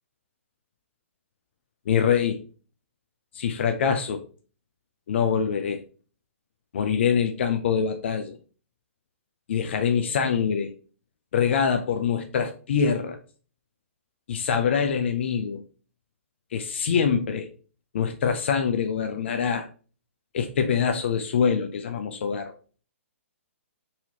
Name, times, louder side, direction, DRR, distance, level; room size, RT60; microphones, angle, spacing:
voice 1, 1.9-2.4 3.3-4.2 5.1-5.8 6.7-8.4 9.5-10.7 11.3-13.2 14.3-15.6 16.5-17.5 17.9-19.7 20.3-22.5, left 7 dB, 55° left, 0.4 m, -24 dB
4.1 x 2.8 x 2.7 m
figure-of-eight pair, 130°, 7 cm